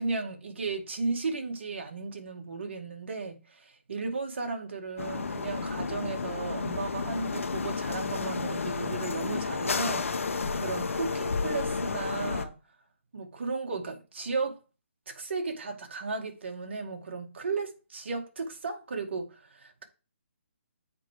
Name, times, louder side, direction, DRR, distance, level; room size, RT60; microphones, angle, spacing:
voice 1, 0.0-12.6 13.1-14.6 15.1-19.8, right 4 dB, 60° right, 1.9 m, -35 dB
sound 1, 5.0-12.5, left 4 dB, 85° left, 1.1 m, -31 dB
7.3 x 4.9 x 5.0 m
hypercardioid pair, 165°, 7 cm